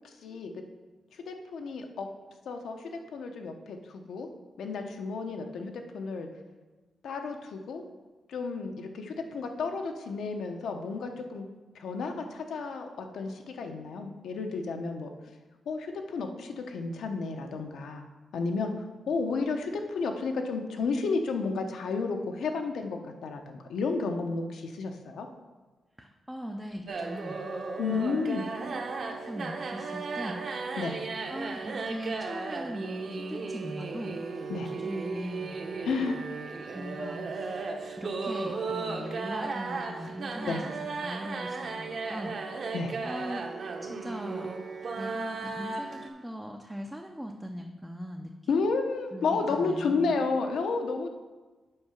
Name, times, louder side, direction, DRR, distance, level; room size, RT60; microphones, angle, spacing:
voice 1, 1.3-2.1 2.5-4.3 4.6-6.3 7.0-7.8 8.3-11.5 11.7-15.1 15.7-18.1 18.3-18.7 19.1-25.3 27.8-28.5 30.8-31.0 34.5-34.7 35.8-36.3 40.4-40.6 42.7-42.9 48.5-51.1, left 4 dB, 75° left, 5 dB, 0.8 m, -32 dB
voice 2, 26.0-27.4 27.9-28.3 28.6-30.7 31.3-35.8 36.7-37.6 38.0-42.4 43.0-43.5 43.8-44.5 45.0-48.6 49.1-50.2, equal, 5° right, 2 dB, 0.4 m, -40 dB
sound 1, 26.9-46.1, right 4 dB, 45° right, 0.8 m, -35 dB
7.8 x 4.6 x 5.8 m, 1.3 s
wide cardioid pair, 175°, 0 cm